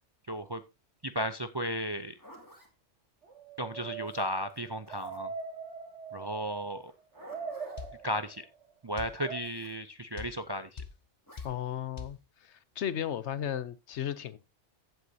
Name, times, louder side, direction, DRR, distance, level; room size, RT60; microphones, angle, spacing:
voice 1, 0.3-0.6 1.0-2.2 3.6-5.3 6.1-6.9 8.0-8.5 8.8-10.8, equal, 35° right, 0.4 m, -34 dB
Zipper (clothing), 1.9-2.7 4.0-5.4 6.8-7.9 9.4-9.8 11.2-11.5, left 1 dB, 15° left, 2.5 m, -55 dB
sound 1, 3.2-6.8 7.2-8.5 9.1-9.4, right 5 dB, 65° right, 1.8 m, -42 dB
sound 2, 7.8-8.0 9.0-9.2 10.2-10.4 10.8-11.0 11.4-11.6 12.0-12.2, left 5 dB, 35° left, 0.9 m, -41 dB
voice 2, 11.4-14.4, left 10 dB, 70° left, 1.0 m, -35 dB
14.5 x 8.1 x 2.7 m
omnidirectional pair, 1.3 m